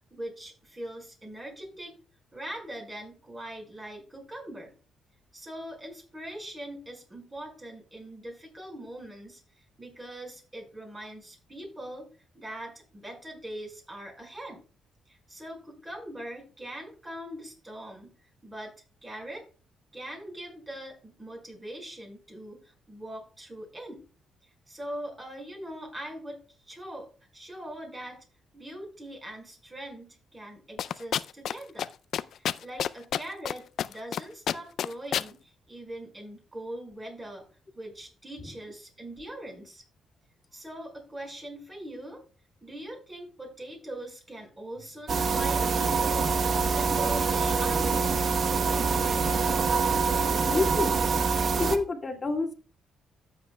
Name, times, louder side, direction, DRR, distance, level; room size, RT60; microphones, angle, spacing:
voice 1, 0.1-1.9 2.3-4.7 5.3-9.4 9.8-12.1 12.3-14.6 15.1-18.1 18.4-18.7 19.0-19.4 19.9-24.0 24.7-26.4 26.7-27.1 27.3-28.2 28.5-31.9 32.4-37.5 37.7-39.8 40.5-42.2 42.6-46.3 46.6-49.2, right 1 dB, 20° right, 1 dB, 5.1 m, -41 dB
sound 1, 30.8-31.5 31.8-31.9 32.1-33.5 33.8-34.2 34.5-35.3, left 9 dB, 65° left, 0.3 m, -28 dB
sound 2, 45.1-51.8, right 5 dB, 50° right, 0.9 m, -25 dB
voice 2, 50.5-51.0 51.6-52.5, left 3 dB, 30° left, 1 dB, 2.1 m, -28 dB
14.0 x 7.4 x 2.2 m, 0.35 s
cardioid pair, 90°, 0 cm